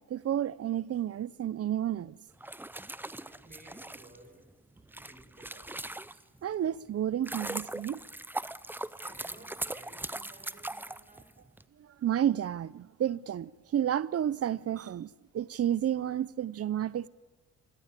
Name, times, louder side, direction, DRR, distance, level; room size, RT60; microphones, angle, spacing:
voice 1, 0.0-2.2 6.4-8.0 11.8-17.1, right 10 dB, 50° right, 0.9 m, -31 dB
sound 1, 2.3-6.4 6.9-11.6, right 1 dB, 5° right, 0.8 m, -40 dB
voice 2, 3.3-4.5 5.0-5.9 9.0-11.4, right 2 dB, 30° right, 7.5 m, -56 dB
28.0 x 23.5 x 8.5 m
cardioid pair, 90°, 30 cm